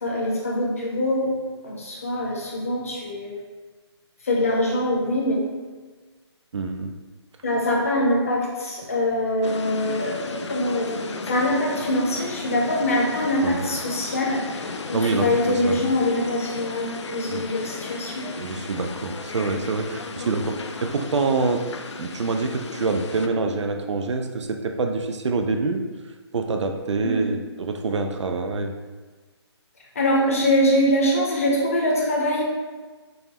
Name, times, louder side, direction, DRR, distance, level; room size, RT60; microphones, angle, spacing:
voice 1, 0.0-1.3 1.6-3.3 4.2-5.4 7.4-18.3 20.2-20.4 27.0-27.3 29.9-32.4, left 1 dB, 30° left, -2 dB, 0.6 m, -24 dB
voice 2, 6.5-6.9 13.4-13.7 14.9-15.3 15.6-15.9 17.3-17.4 18.4-21.7 22.0-25.8 26.3-28.7, right 3 dB, 85° right, 5 dB, 0.4 m, -26 dB
sound 1, 9.4-23.3, left 4 dB, 80° left, 0.4 m, -35 dB
5.5 x 2.1 x 2.9 m, 1.3 s
hypercardioid pair, 180°, 15 cm